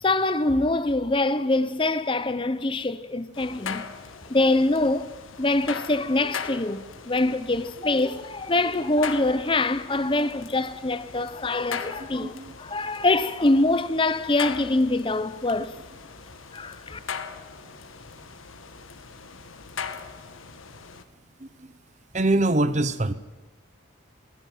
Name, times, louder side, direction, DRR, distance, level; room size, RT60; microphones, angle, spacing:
voice 1, 0.0-3.8 4.3-5.1 5.4-12.3 12.6-15.7 16.5-17.0, left 2 dB, 25° left, 0.8 m, -24 dB
sound 1, 3.3-21.0, left 6 dB, 90° left, 1.5 m, -40 dB
voice 2, 12.0-12.6 21.4-21.7 22.1-23.1, right 2 dB, 35° right, 0.9 m, -24 dB
20.5 x 17.5 x 9.2 m
head